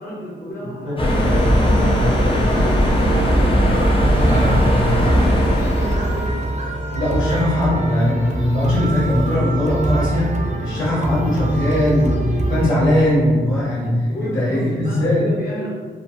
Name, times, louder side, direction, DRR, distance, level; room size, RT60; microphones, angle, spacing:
voice 1, 0.0-3.4 4.2-6.4 14.1-15.7, equal, 45° left, -7 dB, 1.3 m, -31 dB
sound 1, 1.0-6.5, equal, 25° left, 0.6 m, -17 dB
sound 2, 3.7-12.7, right 2 dB, 35° right, 0.5 m, -25 dB
voice 2, 4.0-4.9 6.9-15.3, left 1 dB, 75° left, -10 dB, 1.0 m, -20 dB
3.2 x 2.1 x 2.8 m, 1.5 s
cardioid pair, 55°, 21 cm